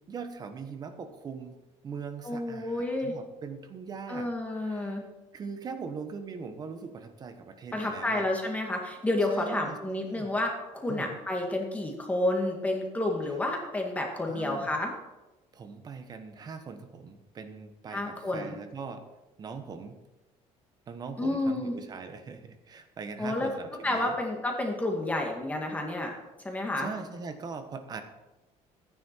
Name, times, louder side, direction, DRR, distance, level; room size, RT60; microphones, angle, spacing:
voice 1, 0.1-1.6 1.8-4.3 4.6-5.0 5.3-8.3 9.2-10.3 10.9-11.2 14.3-14.7 15.5-19.1 19.4-20.0 20.9-24.2 26.8-28.0, right 5 dB, 35° right, 8 dB, 1.2 m, -41 dB
voice 2, 2.2-3.2 4.1-5.0 7.7-14.9 17.9-18.6 21.2-21.8 23.2-23.5 23.8-26.1 26.4-26.9, left 1 dB, 10° left, 1 dB, 2.0 m, -30 dB
14.0 x 9.8 x 4.5 m, 1.1 s
cardioid pair, 150°, 12 cm